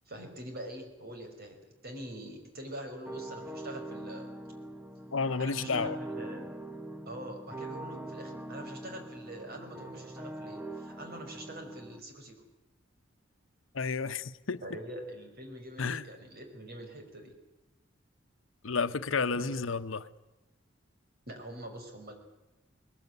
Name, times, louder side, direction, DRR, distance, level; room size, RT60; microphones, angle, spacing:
voice 1, 0.1-1.6 1.8-4.3 5.4-6.6 7.1-12.4 14.6-17.3 19.3-19.5 21.3-22.1, right 1 dB, 55° right, 5.3 m, -44 dB
sound 1, 3.1-12.0, right 1 dB, 10° right, 1.2 m, -42 dB
voice 2, 5.1-6.0 13.7-14.6 15.8-16.0 18.6-20.1, left 4 dB, 80° left, 0.9 m, -31 dB
20.5 x 20.5 x 9.4 m
head